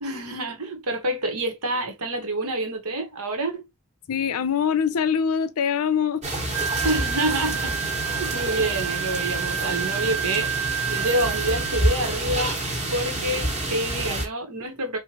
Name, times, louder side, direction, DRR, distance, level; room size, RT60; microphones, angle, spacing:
voice 1, 0.0-3.6 6.8-10.5 10.9-12.6 12.9-15.0, right 1 dB, 90° right, 1.3 m, -27 dB
voice 2, 4.1-6.2, left 7 dB, 75° left, 0.5 m, -23 dB
sound 1, 6.2-14.3, right 1 dB, 30° right, 1.4 m, -28 dB
Wind instrument woodwind instrument, 6.5-12.0, right 8 dB, 60° right, 0.5 m, -30 dB
4.5 x 2.5 x 2.9 m
head